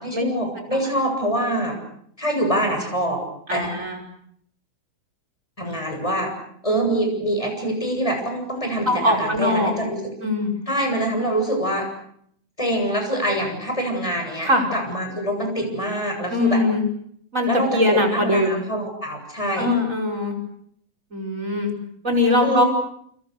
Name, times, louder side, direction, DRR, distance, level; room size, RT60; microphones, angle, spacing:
voice 1, 0.0-1.7 2.2-3.2 3.5-3.7 5.6-6.3 6.6-10.0 10.7-11.9 12.6-16.6 17.5-19.7 22.4-22.7, right 1 dB, 10° left, 3 dB, 7.6 m, -25 dB
voice 2, 3.5-4.0 8.9-9.7 10.2-10.5 13.3-13.4 14.4-14.7 16.3-16.8 17.3-18.6 19.6-20.3 21.1-21.7 22.0-22.6, left 1 dB, 25° right, 2 dB, 5.3 m, -21 dB
29.0 x 27.0 x 6.6 m, 0.68 s
omnidirectional pair, 3.5 m